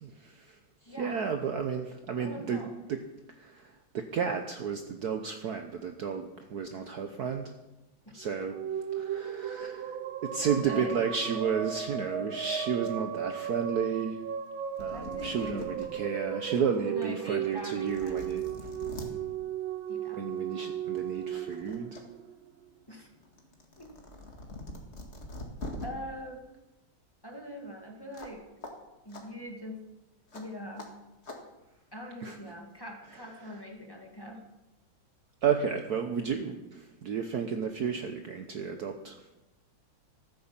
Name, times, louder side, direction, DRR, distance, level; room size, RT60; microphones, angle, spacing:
voice 1, 0.0-3.0 3.4-7.5 8.1-14.2 14.8-18.7 20.1-22.0 32.2-32.4 33.1-33.5 35.4-39.2, right 6 dB, 60° right, 5 dB, 1.2 m, -33 dB
voice 2, 0.9-1.2 2.2-2.7 8.1-8.4 10.6-11.0 14.9-15.7 16.9-18.4 19.9-20.3 22.9-23.1 23.8-23.9 25.8-26.5 27.2-28.5 29.1-29.8 30.3-31.0 31.9-34.5, equal, 10° left, 1 dB, 1.8 m, -43 dB
sound 1, 8.2-22.7, right 9 dB, 75° right, 1.6 m, -36 dB
sound 2, 14.5-14.6 14.8-15.9 16.4-16.5 17.4-17.5 17.8-19.1 20.4-20.6 21.0-22.0 22.4-25.9 28.1-28.4 28.6-28.7 29.1-29.2 30.3-30.4 30.8-30.9 31.2-31.4, left 2 dB, 35° left, 2.0 m, -43 dB
14.5 x 9.6 x 7.3 m, 1.0 s
omnidirectional pair, 2.3 m